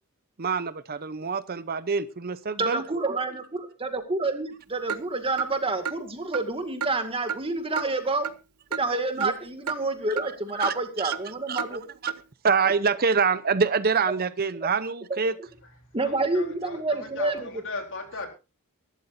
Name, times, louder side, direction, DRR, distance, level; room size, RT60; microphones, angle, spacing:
voice 1, 0.4-2.8 9.2-9.3 10.6-11.1 11.5-12.1 12.4-15.3, right 5 dB, 45° right, 14 dB, 0.7 m, -26 dB
voice 2, 2.6-8.3 8.7-11.8 15.1-15.2 15.9-17.5, right 2 dB, 25° right, 7 dB, 2.1 m, -28 dB
Clock, 4.9-5.0 5.4-5.5 5.9-6.0 6.3-6.5 6.8-6.9 7.3-7.4 7.8-7.9 8.2-8.4 8.7-8.8 9.2-9.3 9.7-9.8 10.2-10.3 10.6-10.8 11.1-11.2 11.6-11.7 12.1-12.2, right 7 dB, 85° right, 0.9 m, -31 dB
voice 3, 16.0-18.3, left 3 dB, 60° left, 3 dB, 3.9 m, -37 dB
23.0 x 12.0 x 2.6 m, 0.30 s
head